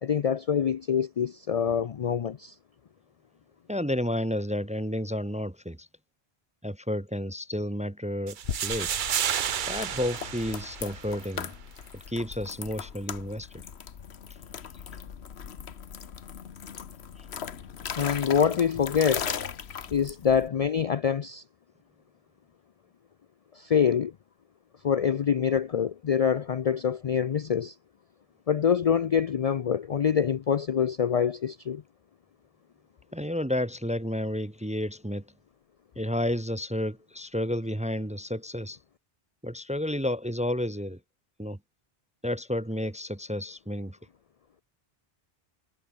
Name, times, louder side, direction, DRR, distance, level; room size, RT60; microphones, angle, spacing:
voice 1, 0.0-2.5 18.0-19.3 19.9-21.4 23.5-24.1 24.8-27.7 28.5-31.8, left 7 dB, 50° left, 0.5 m, -25 dB
voice 2, 3.7-5.9 6.6-8.9 9.7-11.5 11.9-13.6 17.2-17.3 33.1-35.2 36.0-38.8 39.4-41.0 41.4-41.6 42.2-44.0, left 1 dB, 10° right, 0.6 m, -31 dB
sound 1, 8.3-11.3, right 9 dB, 55° right, 0.8 m, -31 dB
sound 2, 8.4-20.5, left 7 dB, 90° left, 1.4 m, -38 dB
omnidirectional pair, 1.1 m